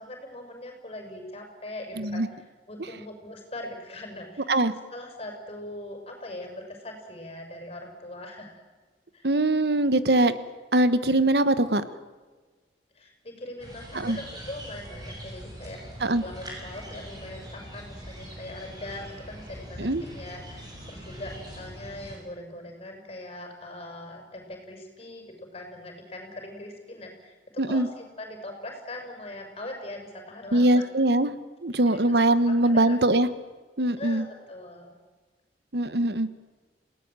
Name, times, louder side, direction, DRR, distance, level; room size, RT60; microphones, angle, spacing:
voice 1, 0.0-4.5 4.9-8.6 9.1-9.3 12.9-27.3 27.7-30.8 31.9-32.0 32.5-33.0 34.0-35.0, left 1 dB, 35° left, 3 dB, 6.5 m, -41 dB
voice 2, 2.0-2.3 4.5-4.7 9.2-10.4 10.7-11.8 13.9-14.2 16.0-16.2 19.8-20.0 27.6-27.9 30.5-31.3 31.6-33.3 33.8-34.2 35.7-36.3, right 1 dB, 65° right, 13 dB, 1.2 m, -22 dB
sound 1, 13.6-22.2, equal, 25° right, 6.9 m, -42 dB
28.5 x 18.0 x 9.1 m, 1.4 s
head